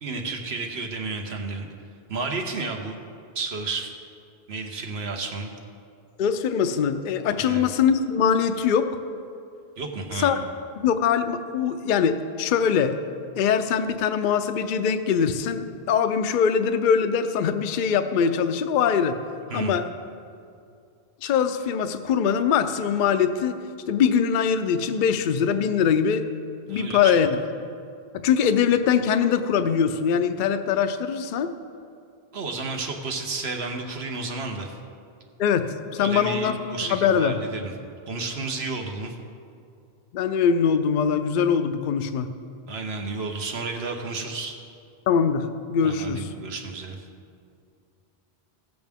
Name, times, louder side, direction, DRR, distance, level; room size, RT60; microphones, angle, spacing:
voice 1, 0.0-1.7 2.1-3.0 3.3-3.9 4.5-5.5 7.4-7.7 9.8-10.4 19.5-19.8 26.7-27.2 32.3-34.8 36.0-37.7 38.1-39.1 42.7-44.6 45.8-47.0, right 3 dB, 80° right, 3 dB, 1.3 m, -32 dB
voice 2, 6.2-8.9 10.2-10.4 10.8-13.0 13.3-19.2 19.5-19.8 21.2-23.5 23.9-26.2 26.7-27.4 28.1-31.5 35.4-37.3 40.1-42.3 45.1-46.3, left 7 dB, 60° left, 9 dB, 0.6 m, -22 dB
16.5 x 7.8 x 3.5 m, 2.4 s
omnidirectional pair, 1.1 m